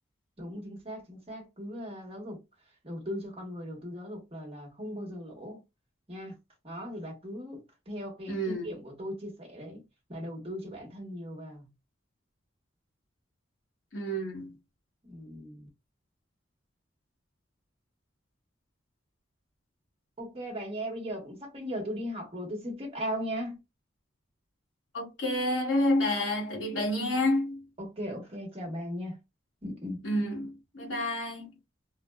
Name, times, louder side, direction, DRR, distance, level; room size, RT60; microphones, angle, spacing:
voice 1, 0.4-2.4 2.8-5.6 6.1-6.3 6.6-7.6 7.9-9.8 10.1-11.7 15.1-15.7 20.2-23.6 27.8-29.2 29.6-30.0, equal, 30° right, 1.1 m, -38 dB
voice 2, 8.3-8.7 13.9-14.5 24.9-27.6 30.0-31.5, left 1 dB, 80° left, 1.2 m, -29 dB
3.8 x 2.1 x 2.2 m
head